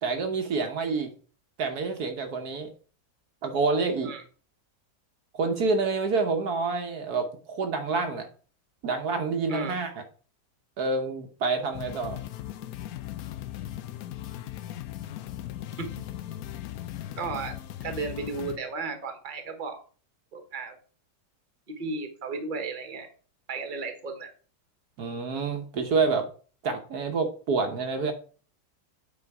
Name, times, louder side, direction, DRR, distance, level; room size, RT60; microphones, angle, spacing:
voice 1, 0.0-1.1 1.6-2.7 3.4-4.1 5.3-8.3 8.8-9.9 10.8-12.2 25.0-26.3 26.6-28.1, right 4 dB, 65° right, 5 dB, 1.4 m, -27 dB
sound 1, 11.7-18.6, left 13 dB, 70° left, 0.9 m, -38 dB
voice 2, 17.2-19.8 20.3-20.8 21.7-23.1 23.5-24.3, right 3 dB, 30° right, 6 dB, 1.2 m, -34 dB
8.6 x 4.5 x 4.7 m, 0.40 s
omnidirectional pair, 1.9 m